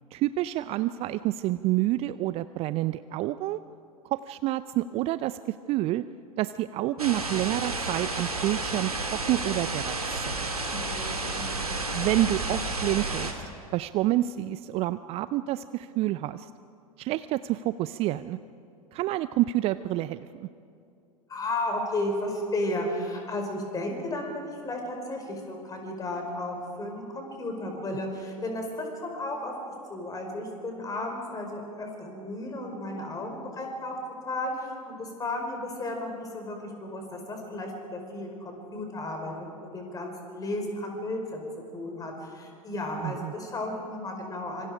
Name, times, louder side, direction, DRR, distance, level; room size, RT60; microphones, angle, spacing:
voice 1, 0.1-3.6 4.0-6.1 6.4-10.4 11.9-13.4 13.7-16.5 17.0-18.4 18.9-20.5 43.0-43.3, right 15 dB, 35° right, 15 dB, 0.5 m, -28 dB
sound 1, 7.0-13.3, right 2 dB, 85° right, 2.4 m, -31 dB
voice 2, 10.7-11.7 21.3-33.9 34.3-41.4 41.7-44.7, left 1 dB, 20° left, 2 dB, 5.1 m, -34 dB
26.0 x 25.5 x 5.1 m, 2.6 s
figure-of-eight pair, 90°, 18 cm